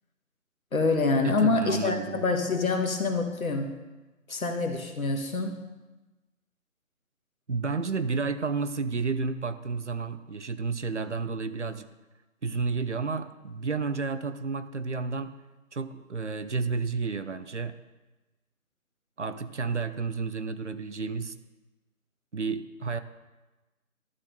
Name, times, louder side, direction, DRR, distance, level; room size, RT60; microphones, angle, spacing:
voice 1, 0.7-3.7 4.3-5.5, left 3 dB, 75° left, 4 dB, 1.6 m, -26 dB
voice 2, 1.2-2.2 7.5-11.9 12.4-15.3 15.7-17.7 19.2-21.3 22.3-23.0, right 4 dB, 55° right, 12 dB, 0.6 m, -31 dB
12.0 x 4.2 x 6.6 m, 1.1 s
figure-of-eight pair, 180°, 42 cm